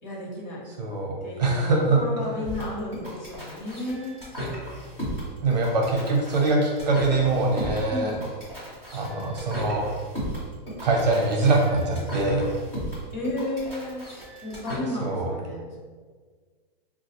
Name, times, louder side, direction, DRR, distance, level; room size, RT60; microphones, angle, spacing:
voice 1, 0.0-0.6 1.2-4.2 7.9-8.1 13.1-14.0 14.4-15.8, left 1 dB, 50° left, -4 dB, 1.1 m, -33 dB
voice 2, 0.8-1.1 1.4-2.3 5.4-8.2 8.9-9.8 10.8-12.5 15.0-15.3, right 3 dB, 45° right, -1 dB, 0.7 m, -23 dB
sound 1, 2.4-14.8, equal, 10° left, 0.7 m, -35 dB
3.6 x 2.3 x 2.9 m, 1.5 s
hypercardioid pair, 180°, 29 cm